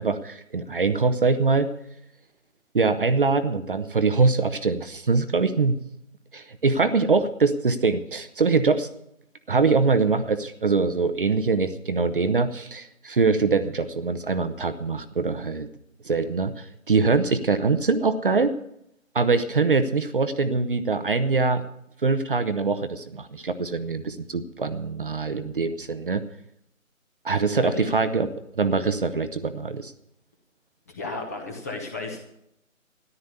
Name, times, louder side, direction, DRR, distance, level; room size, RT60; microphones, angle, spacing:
voice 1, 0.0-1.7 2.7-5.8 6.3-8.9 9.5-15.7 16.0-18.5 19.1-21.6 22.0-26.2 27.2-28.3 28.6-29.9, right 4 dB, 40° right, 11 dB, 0.9 m, -23 dB
voice 2, 27.6-27.9 30.9-32.2, left 3 dB, 10° left, 3 dB, 1.0 m, -33 dB
13.5 x 11.5 x 6.8 m, 0.78 s
figure-of-eight pair, 155°, 41 cm